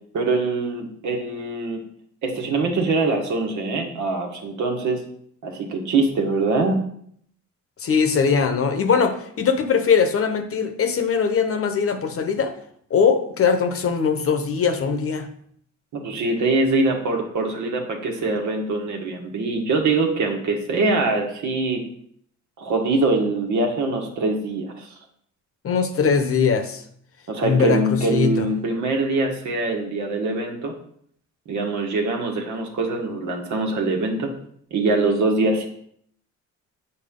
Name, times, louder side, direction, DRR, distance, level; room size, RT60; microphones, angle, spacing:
voice 1, 0.1-1.8 2.2-5.0 5.4-6.8 15.9-21.8 22.6-24.9 27.3-30.7 31.5-34.3 34.7-35.7, right 3 dB, 75° right, 2 dB, 1.5 m, -23 dB
voice 2, 7.8-12.5 12.9-15.3 25.6-26.8 27.4-28.5, left 6 dB, 50° left, 8 dB, 0.9 m, -21 dB
7.9 x 4.5 x 3.7 m, 0.65 s
cardioid pair, 90°, 30 cm